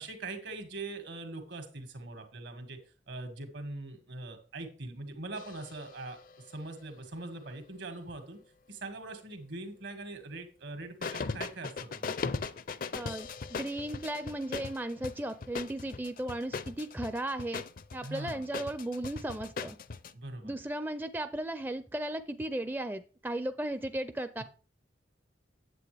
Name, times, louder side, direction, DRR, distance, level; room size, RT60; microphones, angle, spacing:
voice 1, 0.0-2.8 3.1-8.4 8.7-12.0 18.0-18.5 20.1-20.6, right 2 dB, 80° right, 6 dB, 2.0 m, -42 dB
sound 1, 5.4-6.8 11.0-20.1, left 4 dB, 50° left, 0.5 m, -39 dB
voice 2, 12.9-17.6 17.9-19.8 20.4-24.4, right 1 dB, 10° right, 10 dB, 0.4 m, -36 dB
9.1 x 7.8 x 3.4 m, 0.37 s
head